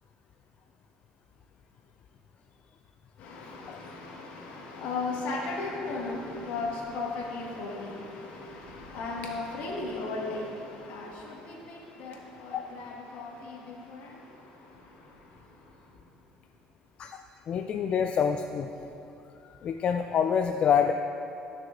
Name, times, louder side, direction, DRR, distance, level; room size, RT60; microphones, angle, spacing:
voice 1, 3.2-14.2, left 3 dB, 70° left, -2 dB, 1.5 m, -36 dB
voice 2, 17.5-18.7 19.4-20.9, left 7 dB, 50° left, 6 dB, 0.3 m, -26 dB
13.5 x 6.3 x 2.5 m, 2.8 s
supercardioid pair, 90°, 3 cm